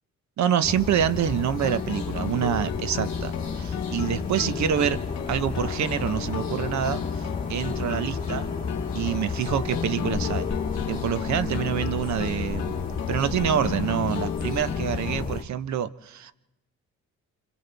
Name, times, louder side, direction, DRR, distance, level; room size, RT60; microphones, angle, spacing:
voice 1, 0.4-5.0 5.3-8.5 8.9-10.5 10.9-16.3, right 9 dB, 65° right, 1.0 m, -27 dB
sound 1, 0.6-15.4, left 4 dB, 25° left, 2.2 m, -33 dB
sound 2, 1.2-15.3, left 8 dB, 65° left, 1.0 m, -33 dB
30.0 x 26.0 x 3.5 m
cardioid pair, 90°, 30 cm